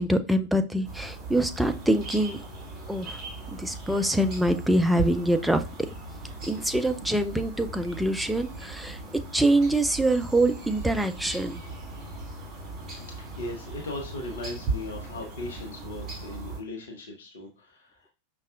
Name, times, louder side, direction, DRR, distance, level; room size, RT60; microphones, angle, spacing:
voice 1, 0.0-2.4 2.9-3.2 3.6-5.6 6.5-9.0 9.3-11.6, right 1 dB, 5° right, 8 dB, 0.4 m, -24 dB
sound 1, 0.8-16.6, right 3 dB, 30° right, 1.5 m, -38 dB
voice 2, 12.8-18.1, left 2 dB, 60° left, 1 dB, 0.8 m, -38 dB
5.3 x 2.3 x 2.4 m, 0.32 s
figure-of-eight pair, 90°, 0 cm